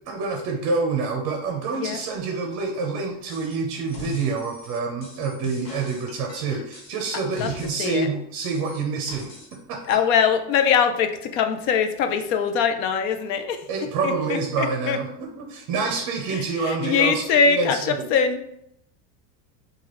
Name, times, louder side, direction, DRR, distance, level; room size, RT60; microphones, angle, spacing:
voice 1, 0.1-9.3 9.7-10.0 13.7-18.1, right 4 dB, 35° right, 2 dB, 0.6 m, -27 dB
sound 1, 3.3-3.6 3.9-8.0 8.4-9.6 9.9-10.0, left 4 dB, 75° left, 1.3 m, -41 dB
voice 2, 9.9-13.6 14.0-15.0 16.3-18.4, left 6 dB, 55° left, 8 dB, 0.6 m, -22 dB
4.7 x 2.4 x 3.0 m, 0.75 s
supercardioid pair, 140°, 49 cm